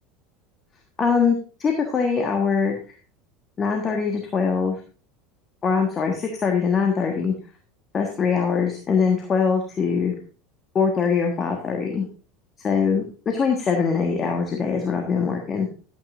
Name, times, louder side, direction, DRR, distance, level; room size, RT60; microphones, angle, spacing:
voice 1, 1.0-2.8 3.6-4.8 5.6-7.3 7.9-10.1 10.7-12.1 12.6-15.7, left 5 dB, 30° left, 3 dB, 1.5 m, -22 dB
12.0 x 8.9 x 2.6 m, 0.38 s
figure-of-eight pair, 75°, 0 cm